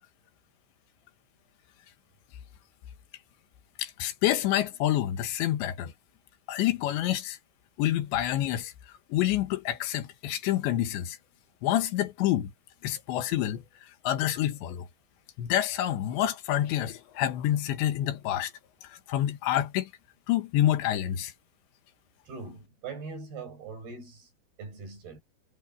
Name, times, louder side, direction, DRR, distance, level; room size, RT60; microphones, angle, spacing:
voice 1, 3.8-5.9 6.5-7.4 7.8-8.7 9.1-11.2 11.6-12.5 12.8-14.9 15.4-18.5 18.8-19.9 20.3-21.3, left 12 dB, 85° left, 3.8 m, -28 dB
voice 2, 22.3-24.3 24.6-25.2, right 4 dB, 60° right, 9.1 m, -41 dB
omnidirectional pair, 5.0 m